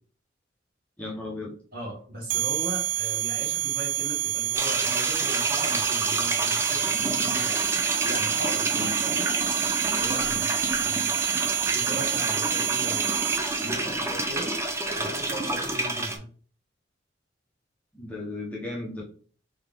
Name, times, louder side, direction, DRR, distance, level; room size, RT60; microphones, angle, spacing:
voice 1, 1.0-1.5 8.7-8.9 17.9-19.0, left 2 dB, 10° left, -4 dB, 1.0 m, -35 dB
voice 2, 1.7-7.6 8.0-9.3 10.0-11.2 11.7-13.1 13.6-14.5 15.0-16.3, right 1 dB, 50° right, -2 dB, 1.8 m, -38 dB
sound 1, 2.3-13.7, right 13 dB, 80° right, 0.4 m, -28 dB
sound 2, 4.5-16.2, right 2 dB, 15° right, 0.6 m, -29 dB
3.6 x 3.4 x 3.6 m, 0.43 s
head